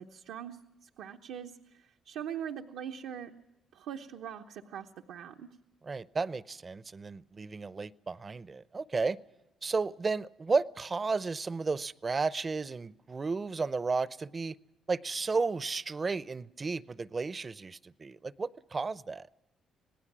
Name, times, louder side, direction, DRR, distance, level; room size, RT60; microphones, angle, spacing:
voice 1, 0.0-3.3 3.7-5.5, right 9 dB, 90° right, 1.0 m, -42 dB
voice 2, 5.8-9.2 9.6-14.5 14.9-19.3, right 4 dB, 30° right, 0.7 m, -33 dB
26.5 x 18.5 x 6.2 m
cardioid pair, 90°, 0 cm